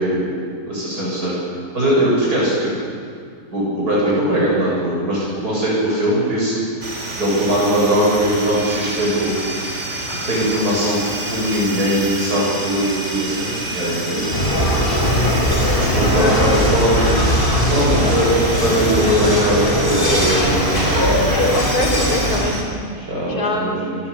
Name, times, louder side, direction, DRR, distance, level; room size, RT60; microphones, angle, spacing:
voice 1, 0.0-1.4 1.7-2.7 3.5-6.5 7.2-9.4 10.1-11.0 11.3-14.3 15.8-17.4 17.7-18.3 18.6-21.4 22.9-24.0, right 1 dB, 75° right, -6 dB, 8.3 m, -20 dB
sound 1, 6.8-22.6, right 1 dB, 45° right, 4.0 m, -28 dB
sound 2, 14.3-22.5, equal, 35° left, 5.7 m, -18 dB
voice 2, 15.9-16.4 18.0-18.2 21.5-22.8 23.3-23.8, left 1 dB, 70° left, 1 dB, 4.0 m, -25 dB
27.5 x 19.5 x 8.4 m, 2.2 s
omnidirectional pair, 1.7 m